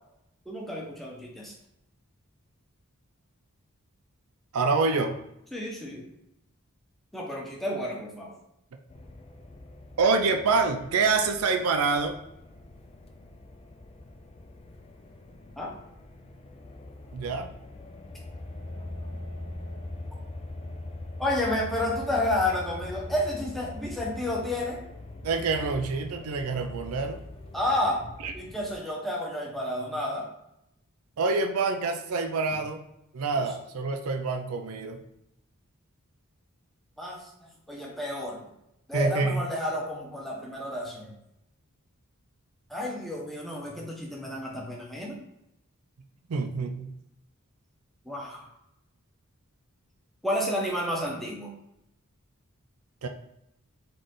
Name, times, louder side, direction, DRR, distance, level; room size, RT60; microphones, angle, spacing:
voice 1, 0.5-1.5 5.5-6.0 7.1-8.4 15.6-15.7 21.2-24.8 27.5-28.1 28.3-30.3 37.0-37.3 37.7-38.4 38.9-41.1 42.7-45.2 48.0-48.5 50.2-51.5, left 1 dB, ahead, -3 dB, 0.9 m, -30 dB
voice 2, 4.5-5.1 10.0-12.2 17.1-17.5 25.2-27.2 28.2-28.3 31.2-32.8 33.1-35.0 38.9-39.4 46.3-46.9 53.0-53.1, right 4 dB, 75° right, 5 dB, 0.5 m, -26 dB
sound 1, 8.9-28.8, left 2 dB, 25° left, 0.4 m, -42 dB
3.9 x 3.3 x 3.7 m, 0.84 s
head